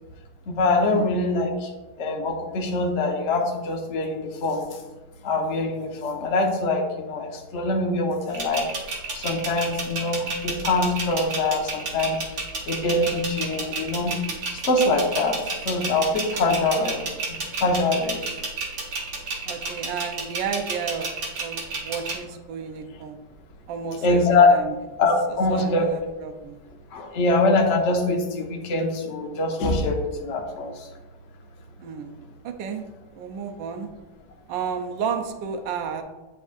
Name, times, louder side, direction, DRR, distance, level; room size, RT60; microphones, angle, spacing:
voice 1, 0.5-1.7 2.0-4.7 5.2-8.7 9.1-12.2 12.7-14.2 14.5-18.2 24.0-24.5 25.0-25.9 26.9-30.9, left 2 dB, 55° left, 0 dB, 0.8 m, -23 dB
sound 1, 8.3-22.1, right 4 dB, 50° right, 1.7 m, -30 dB
voice 2, 19.4-21.1 21.4-23.2 23.7-24.2 24.5-24.7 25.3-26.6 31.8-32.2 32.4-32.8 33.2-33.9 34.5-36.0, right 6 dB, 70° right, 4 dB, 1.2 m, -32 dB
9.7 x 4.5 x 2.5 m, 1.1 s
omnidirectional pair, 2.4 m